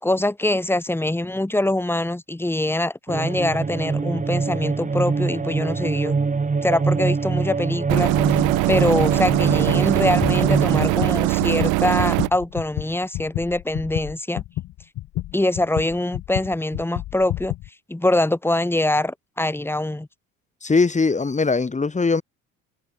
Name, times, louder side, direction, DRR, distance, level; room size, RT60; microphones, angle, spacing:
voice 1, 0.0-6.1 6.6-8.4 8.7-14.4 15.3-17.5 17.9-20.1, left 1 dB, 5° left, 5.2 m, -23 dB
sound 1, 3.1-11.2, right 4 dB, 25° right, 5.1 m, -24 dB
sound 2, 7.9-12.3, right 28 dB, 80° right, 4.1 m, -21 dB
sound 3, 9.5-9.8 10.1-17.7, left 16 dB, 70° left, 6.1 m, -30 dB
voice 2, 20.6-22.2, left 4 dB, 25° left, 7.6 m, -20 dB
supercardioid pair, 80°, 30 cm